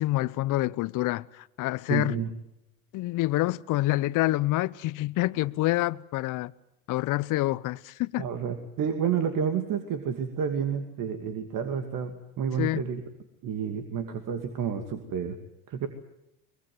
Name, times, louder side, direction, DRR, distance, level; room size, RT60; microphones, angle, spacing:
voice 1, 0.0-2.2 2.9-6.5 6.9-8.3 12.6-12.8, left 17 dB, 45° left, 0.8 m, -27 dB
voice 2, 1.9-2.3 8.2-13.0 13.4-15.4 15.7-15.9, right 7 dB, 45° right, 2.5 m, -30 dB
24.0 x 22.0 x 7.8 m
hypercardioid pair, 85°, 43 cm